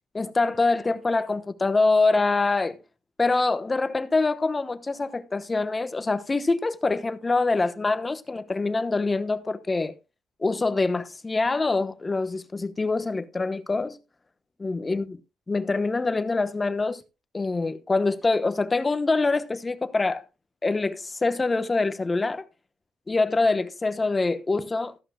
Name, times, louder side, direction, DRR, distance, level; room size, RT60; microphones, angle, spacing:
voice 1, 0.1-2.8 3.2-9.9 10.4-14.0 14.6-15.1 15.5-17.0 17.3-20.2 20.6-22.4 23.1-25.0, left 3 dB, 25° left, 1.0 m, -25 dB
14.5 x 11.5 x 2.3 m
cardioid pair, 90°, 0 cm